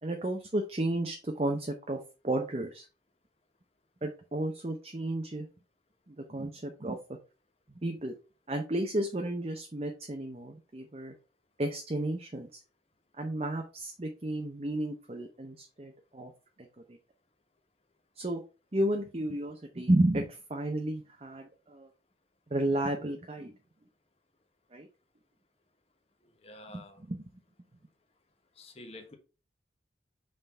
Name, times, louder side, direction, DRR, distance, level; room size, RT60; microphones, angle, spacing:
voice 1, 0.0-2.0 2.2-2.9 4.0-5.5 6.1-7.0 7.8-8.2 8.5-11.1 11.6-12.6 13.2-16.3 16.9-17.0 18.1-18.4 18.7-21.9 22.5-23.5 24.7-24.9 26.7-27.2, right 1 dB, 35° right, 3 dB, 0.7 m, -32 dB
voice 2, 26.4-27.0 28.5-29.1, left 2 dB, 35° left, 4 dB, 1.2 m, -48 dB
5.5 x 3.9 x 4.4 m, 0.32 s
head